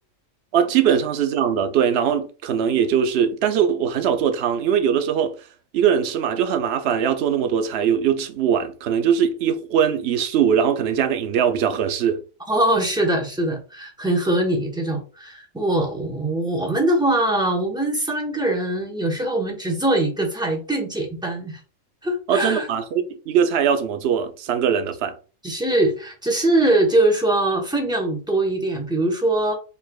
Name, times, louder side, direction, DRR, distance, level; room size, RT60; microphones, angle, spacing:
voice 1, 0.5-5.4 5.7-12.2 22.3-25.2, right 8 dB, 60° right, 0.8 m, -21 dB
voice 2, 12.5-21.6 22.0-22.7 25.4-29.6, right 1 dB, 5° right, 0.9 m, -22 dB
4.9 x 4.1 x 2.4 m
omnidirectional pair, 1.4 m